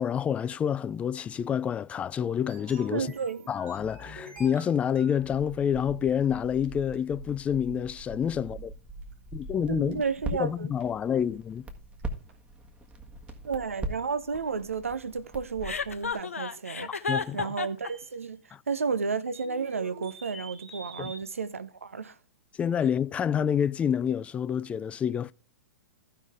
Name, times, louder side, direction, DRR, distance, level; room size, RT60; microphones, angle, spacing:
voice 1, 0.0-3.1 3.5-8.7 9.3-10.0 10.4-11.7 17.1-17.5 18.5-18.6 21.0-21.1 22.6-25.3, left 8 dB, 15° left, 0.3 m, -28 dB
sound 1, 2.5-5.5 6.2-6.3 6.6-6.7 6.9-7.0 9.0-9.1 9.4-9.5 9.9-10.0 10.8-10.9 12.0-12.1 12.3-12.4 12.9-13.0 13.3-13.4 16.2-16.8 17.8-18.2 19.3-21.2, right 2 dB, 50° right, 4.7 m, -47 dB
voice 2, 2.9-3.4 9.7-10.7 13.4-18.4 18.7-22.2, right 5 dB, 80° right, 0.7 m, -32 dB
Crackle, 5.3-16.1, right 2 dB, 15° right, 1.7 m, -41 dB
Chuckle chortle, 15.6-17.9, left 4 dB, 80° left, 0.8 m, -31 dB
15.5 x 5.7 x 3.5 m
figure-of-eight pair, 105°, 7 cm